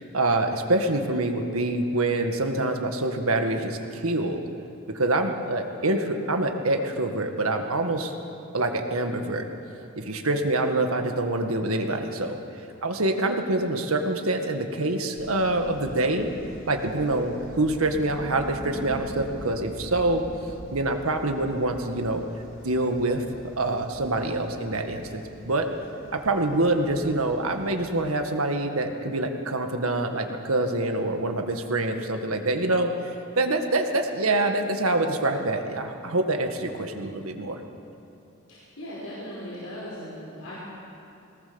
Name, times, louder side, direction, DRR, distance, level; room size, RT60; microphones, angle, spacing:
voice 1, 0.0-4.4 4.9-8.1 8.5-9.5 10.0-12.4 12.8-16.3 16.7-20.2 20.7-22.2 22.6-23.2 23.6-25.7 26.1-37.6, right 2 dB, 75° right, 5 dB, 1.8 m, -26 dB
sound 1, 15.2-28.0, equal, 65° left, 3.1 m, -43 dB
voice 2, 38.5-40.6, equal, 90° left, -7 dB, 5.1 m, -38 dB
22.0 x 19.0 x 7.1 m, 2.8 s
head